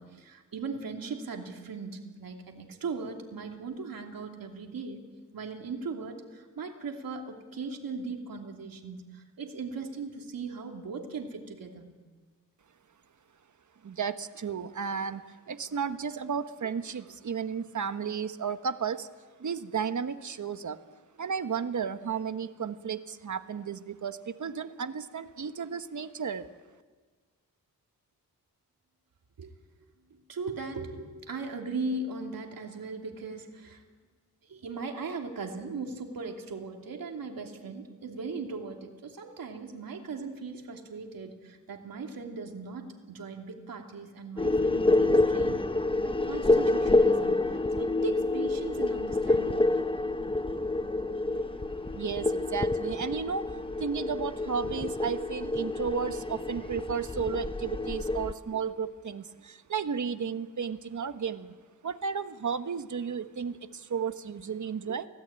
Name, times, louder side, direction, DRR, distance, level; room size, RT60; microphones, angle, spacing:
voice 1, 0.0-5.1 5.3-11.9 29.4-29.5 30.1-33.8 34.4-49.8, right 4 dB, 85° right, 2 dB, 3.0 m, -38 dB
voice 2, 13.8-19.1 19.4-20.8 21.2-26.5 51.9-53.5 53.8-61.6 61.8-65.1, right 6 dB, 60° right, 10 dB, 1.2 m, -33 dB
sound 1, 44.4-58.3, left 2 dB, 15° left, 0.8 m, -28 dB
23.5 x 18.0 x 8.9 m, 1.4 s
wide cardioid pair, 95°, 34 cm